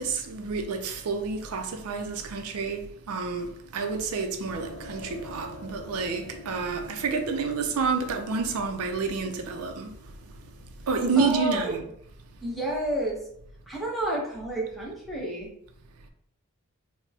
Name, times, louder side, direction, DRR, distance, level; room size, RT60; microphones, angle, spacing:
voice 1, 0.0-11.8, right 4 dB, 85° right, 0.5 m, -29 dB
sound 1, 4.5-12.8, left 1 dB, 60° left, 0.6 m, -47 dB
voice 2, 11.2-11.8 12.4-13.2 13.7-15.5, right 1 dB, ahead, 0.8 m, -30 dB
4.3 x 2.1 x 2.7 m
head